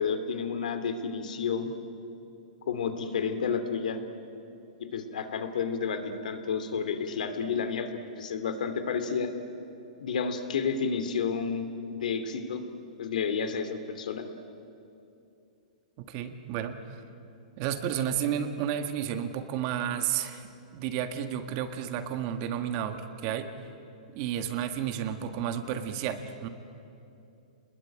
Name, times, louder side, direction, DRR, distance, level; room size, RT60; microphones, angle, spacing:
voice 1, 0.0-1.7 2.7-4.0 4.9-7.9 8.2-9.3 10.0-12.6 13.0-14.2, left 6 dB, 80° left, 9 dB, 2.7 m, -30 dB
voice 2, 16.0-17.0 17.6-23.5 24.2-26.5, right 9 dB, 35° right, 8 dB, 1.6 m, -32 dB
28.5 x 21.0 x 9.1 m, 2.7 s
hypercardioid pair, 160°, 4 cm